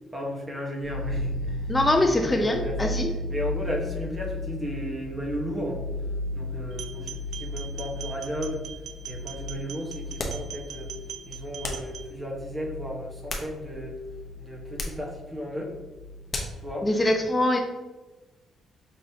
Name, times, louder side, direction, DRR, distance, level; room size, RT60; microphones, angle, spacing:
voice 1, 0.1-2.9 3.3-5.8 6.3-8.6 9.1-10.9 11.3-14.0 14.4-15.7 16.6-16.9, equal, 20° right, -1 dB, 1.2 m, -34 dB
sound 1, 0.8-16.9, left 1 dB, 70° left, 0.9 m, -35 dB
voice 2, 1.7-3.1 16.8-17.6, left 1 dB, 20° left, 4 dB, 0.4 m, -23 dB
sound 2, 6.7-12.1, right 9 dB, 65° right, 0.4 m, -41 dB
sound 3, 10.2-10.5 11.6-11.9 13.0-13.9 14.7-15.1 16.3-16.7, left 2 dB, 40° left, 0.8 m, -34 dB
5.4 x 2.9 x 2.8 m, 1.2 s
cardioid pair, 90°, 0 cm